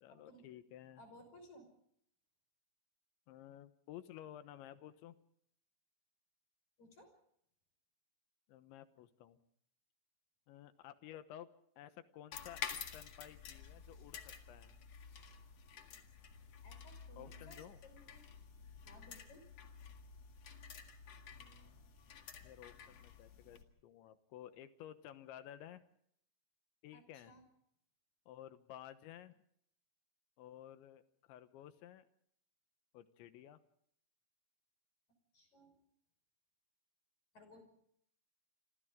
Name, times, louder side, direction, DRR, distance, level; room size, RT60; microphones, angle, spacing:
voice 1, 0.0-1.0 3.3-5.2 8.5-9.4 10.5-11.5 11.8-14.7 17.2-17.8 21.3-21.8 22.4-25.8 26.8-27.3 28.3-29.4 30.4-31.0 31.3-32.1 32.9-33.6, left 11 dB, 75° left, 11 dB, 3.2 m, -54 dB
voice 2, 1.0-1.7 6.8-7.1 16.6-18.2 18.8-19.4 26.9-27.4 35.3-35.8 37.3-37.6, left 1 dB, 35° left, 7 dB, 6.6 m, -59 dB
sound 1, 12.3-23.6, left 7 dB, 55° left, 1.8 m, -51 dB
28.0 x 26.5 x 3.7 m, 0.69 s
omnidirectional pair, 5.8 m